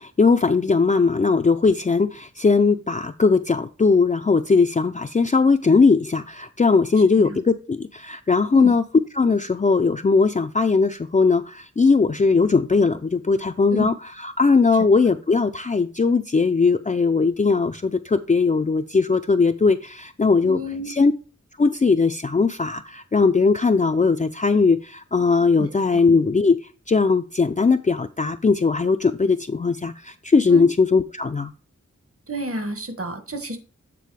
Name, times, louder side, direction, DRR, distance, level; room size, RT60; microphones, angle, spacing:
voice 1, 0.0-8.8 9.1-20.6 20.9-21.1 21.6-26.6 26.9-31.5, left 4 dB, 25° left, 0.5 m, -19 dB
voice 2, 20.4-20.9 25.6-26.0 30.5-30.7 32.3-33.6, right 1 dB, 50° right, 1.4 m, -30 dB
8.4 x 3.8 x 4.7 m
cardioid pair, 45°, 30 cm